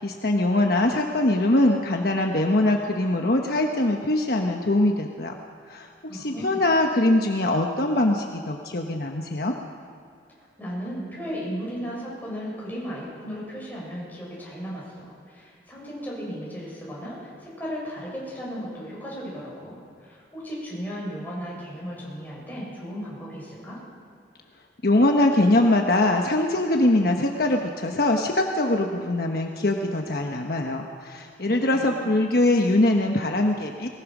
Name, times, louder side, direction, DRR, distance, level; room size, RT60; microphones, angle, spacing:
voice 1, 0.0-5.3 5.7-9.5 24.8-33.9, left 1 dB, 55° left, 2 dB, 1.2 m, -22 dB
voice 2, 6.1-6.6 10.6-23.8 31.5-32.1, equal, 10° left, -6 dB, 7.3 m, -35 dB
21.0 x 20.5 x 6.2 m, 2.2 s
head